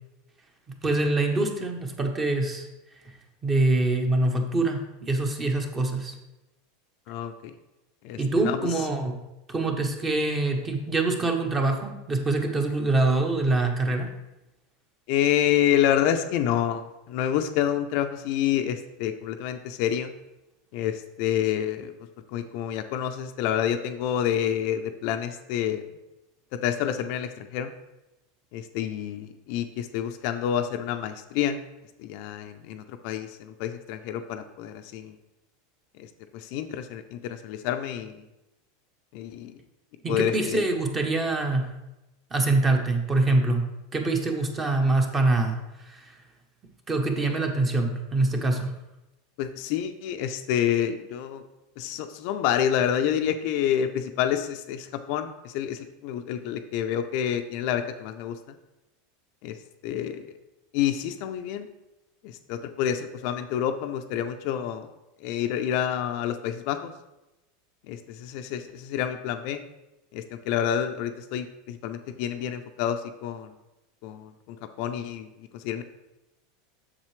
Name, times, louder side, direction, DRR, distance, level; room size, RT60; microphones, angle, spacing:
voice 1, 0.8-2.7 3.4-6.2 8.2-9.1 9.5-14.1 40.0-41.7 42.3-43.6 43.9-46.2 46.9-48.7, right 2 dB, 15° right, 4 dB, 0.9 m, -25 dB
voice 2, 7.1-7.5 8.0-8.2 8.4-8.6 15.1-20.1 20.7-21.9 22.3-25.9 26.6-27.7 28.5-31.6 32.0-35.2 36.3-38.2 39.1-39.6 40.1-40.7 49.4-51.4 51.8-58.4 59.4-59.6 59.8-60.3 60.7-61.7 62.2-64.9 65.2-66.9 67.9-69.6 70.1-73.5 74.0-75.8, left 10 dB, 50° left, 7 dB, 0.5 m, -28 dB
7.4 x 6.6 x 3.2 m, 0.97 s
supercardioid pair, 155°, 0 cm